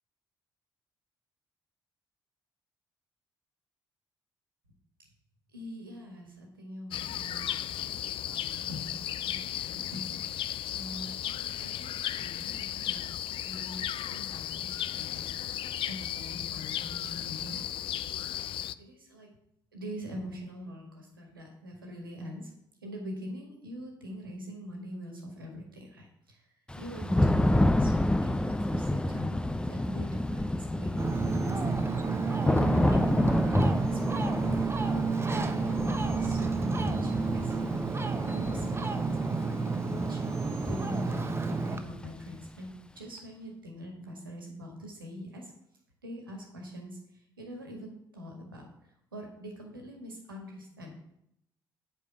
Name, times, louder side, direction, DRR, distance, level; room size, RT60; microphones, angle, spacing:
voice 1, 5.5-10.2 10.6-13.1 13.4-17.6 18.8-19.3 19.7-22.5 22.8-26.5 26.8-35.0 35.3-37.7 38.2-45.5 46.0-50.9, equal, 90° right, 1 dB, 1.7 m, -43 dB
sound 1, 6.9-18.7, left 11 dB, 50° left, 0.4 m, -35 dB
Thunder / Rain, 26.7-42.5, left 1 dB, 10° left, 0.7 m, -30 dB
Ocean, 31.0-41.8, right 4 dB, 20° right, 1.1 m, -30 dB
8.3 x 5.6 x 7.0 m, 0.78 s
figure-of-eight pair, 45°, 11 cm